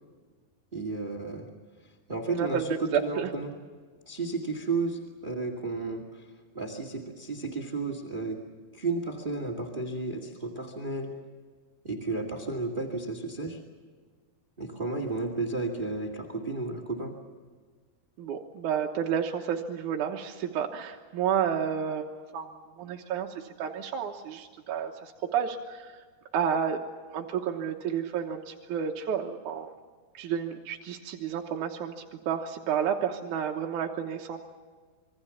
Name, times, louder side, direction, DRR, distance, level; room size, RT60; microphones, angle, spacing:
voice 1, 0.7-1.5 2.1-3.6 4.0-6.2 6.5-8.4 8.7-11.1 11.8-13.6 14.6-17.1, right 3 dB, 25° right, 6 dB, 1.1 m, -32 dB
voice 2, 2.3-3.3 18.2-22.5 22.8-26.0 26.3-26.8 27.1-29.7 30.1-31.9 32.3-34.4, right 8 dB, 65° right, 1 dB, 2.1 m, -31 dB
26.5 x 23.0 x 7.1 m, 1.5 s
omnidirectional pair, 4.8 m